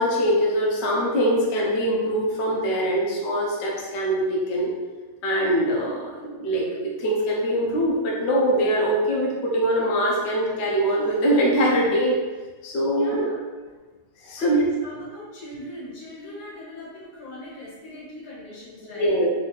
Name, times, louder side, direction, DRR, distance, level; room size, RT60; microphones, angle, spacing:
voice 1, 0.0-4.7 5.2-12.2 12.6-13.2 14.2-14.7 18.9-19.3, equal, 50° left, -3 dB, 0.9 m, -23 dB
voice 2, 12.9-13.4 14.4-19.2, left 1 dB, 90° left, -6 dB, 2.1 m, -40 dB
4.4 x 2.7 x 3.9 m, 1.3 s
omnidirectional pair, 1.9 m